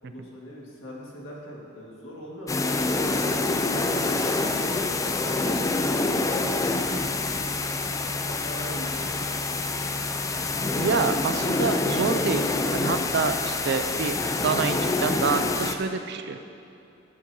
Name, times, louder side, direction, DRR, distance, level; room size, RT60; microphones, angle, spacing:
voice 1, 0.0-3.3 3.7-7.8 8.2-10.4, equal, 80° left, -3 dB, 1.7 m, -41 dB
sound 1, 2.5-15.8, left 3 dB, 15° left, 0.3 m, -26 dB
voice 2, 10.7-14.2 14.4-16.4, right 5 dB, 60° right, 8 dB, 0.4 m, -27 dB
13.0 x 7.3 x 2.7 m, 2.7 s
head